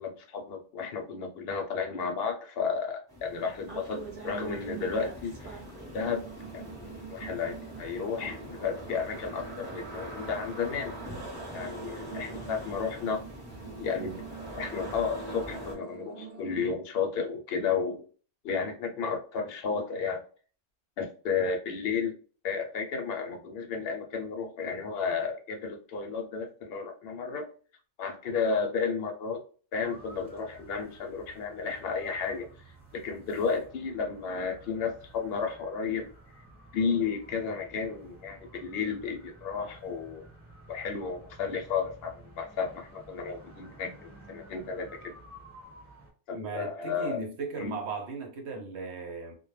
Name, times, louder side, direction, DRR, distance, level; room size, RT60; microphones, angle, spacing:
voice 1, 0.0-5.6 5.9-6.3 6.5-10.9 11.5-13.2 13.8-14.2 14.6-18.0 18.4-20.2 21.0-22.2 22.4-27.5 28.0-29.4 29.7-32.5 32.9-36.1 36.7-40.2 40.7-45.2 46.3-47.2 47.6-47.7, left 5 dB, 65° left, 0.7 m, -32 dB
sound 1, 3.1-15.8, equal, 5° left, 0.8 m, -44 dB
sound 2, 3.7-6.0 6.2-16.7, right 4 dB, 50° right, 0.8 m, -45 dB
sound 3, 29.8-46.1, right 1 dB, 15° right, 1.1 m, -53 dB
voice 2, 46.3-49.3, right 4 dB, 75° right, 0.9 m, -37 dB
2.2 x 2.1 x 3.0 m
omnidirectional pair, 1.2 m